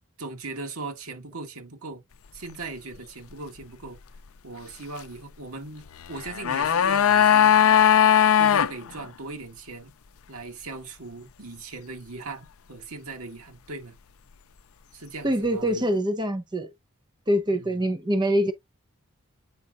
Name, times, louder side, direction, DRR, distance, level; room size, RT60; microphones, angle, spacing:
voice 1, 0.2-2.0 2.3-4.0 4.4-7.6 8.4-9.9 10.3-14.0 14.9-15.9 17.5-17.8, right 3 dB, 80° right, 2.0 m, -39 dB
sound 1, 6.1-8.7 9.0-9.1, left 9 dB, 70° left, 0.5 m, -18 dB
voice 2, 15.2-16.7 17.3-18.5, equal, 20° right, 0.7 m, -24 dB
8.7 x 5.1 x 2.5 m
head